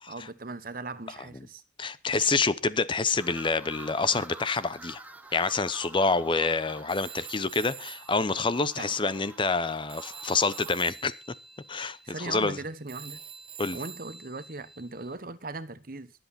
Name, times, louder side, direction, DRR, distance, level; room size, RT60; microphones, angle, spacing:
voice 1, 0.0-1.6 8.7-9.0 12.0-13.2 13.7-16.1, right 3 dB, 55° right, 1.1 m, -39 dB
voice 2, 1.8-5.0 5.3-11.1 11.7-12.6 13.6-13.8, left 4 dB, 30° left, 0.7 m, -27 dB
sound 1, 3.1-10.7, right 2 dB, 10° right, 1.3 m, -48 dB
Telephone, 6.9-9.6 9.9-15.1, right 7 dB, 30° right, 1.1 m, -46 dB
22.0 x 8.1 x 4.3 m
head